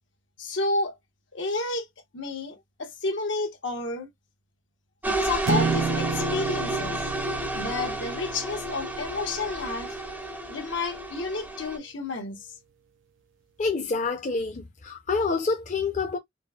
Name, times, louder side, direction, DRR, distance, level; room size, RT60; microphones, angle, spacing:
voice 1, 0.4-1.0 1.3-1.9 2.1-4.1 5.0-7.0 7.5-10.0 10.5-12.4, left 3 dB, 80° left, 1.0 m, -31 dB
sound 1, 5.0-11.8, right 1 dB, 10° right, 0.5 m, -31 dB
sound 2, 5.5-9.8, right 6 dB, 85° right, 0.3 m, -31 dB
voice 2, 13.6-16.2, left 4 dB, 40° left, 0.6 m, -27 dB
3.9 x 2.0 x 2.3 m
head